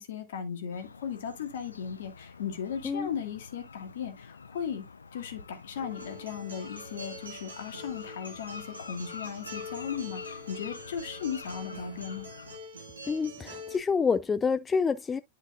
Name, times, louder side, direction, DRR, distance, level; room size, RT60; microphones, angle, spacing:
voice 1, 0.0-4.8 5.1-12.3, left 7 dB, 60° left, 1.8 m, -37 dB
sound 1, 0.7-12.6, left 4 dB, 75° left, 0.5 m, -47 dB
Acoustic guitar, 5.8-13.8, left 1 dB, 70° right, 2.0 m, -44 dB
voice 2, 13.1-15.2, left 5 dB, 15° left, 0.3 m, -27 dB
11.5 x 4.6 x 2.4 m
figure-of-eight pair, 90°, 0 cm